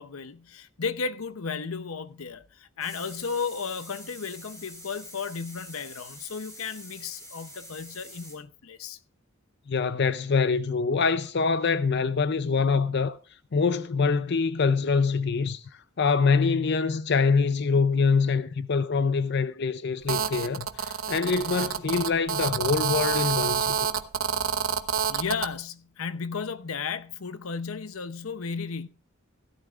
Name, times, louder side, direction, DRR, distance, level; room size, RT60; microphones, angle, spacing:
voice 1, 0.0-9.0 25.1-28.9, left 5 dB, 90° left, 0.8 m, -34 dB
sound 1, 2.8-8.4, equal, 15° left, 4.4 m, -46 dB
voice 2, 9.7-13.2 13.5-15.6 16.0-23.9, left 5 dB, 55° left, 0.5 m, -24 dB
Telephone, 20.1-25.5, right 7 dB, 85° right, 0.9 m, -28 dB
16.5 x 12.0 x 2.4 m
head